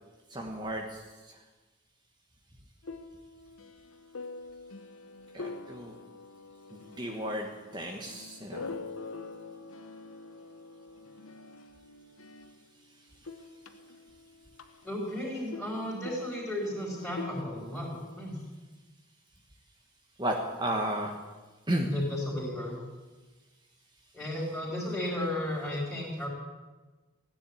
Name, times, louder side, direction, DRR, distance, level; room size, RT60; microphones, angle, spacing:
voice 1, 0.3-1.3 5.3-5.9 6.7-8.8 20.2-21.2 21.7-21.9, right 1 dB, 20° right, 1 dB, 1.4 m, -34 dB
sound 1, 2.8-12.8 13.1-18.3, left 3 dB, 90° left, 1.0 m, -45 dB
voice 2, 14.8-18.4 21.8-22.8 24.1-26.3, left 1 dB, ahead, -6 dB, 4.1 m, -34 dB
15.5 x 10.0 x 8.7 m, 1.3 s
head